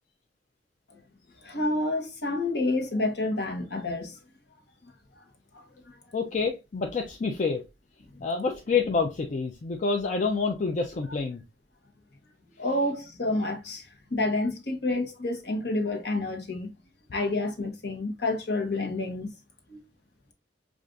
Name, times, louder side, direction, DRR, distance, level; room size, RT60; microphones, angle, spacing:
voice 1, 1.4-4.2 5.5-5.6 5.9-6.0 8.1-8.2 12.6-16.7 17.1-19.3 19.7-19.8, left 2 dB, 65° left, 0.9 m, -29 dB
voice 2, 6.1-7.6 8.2-11.4, left 4 dB, 45° left, 0.4 m, -27 dB
5.0 x 2.4 x 2.3 m
head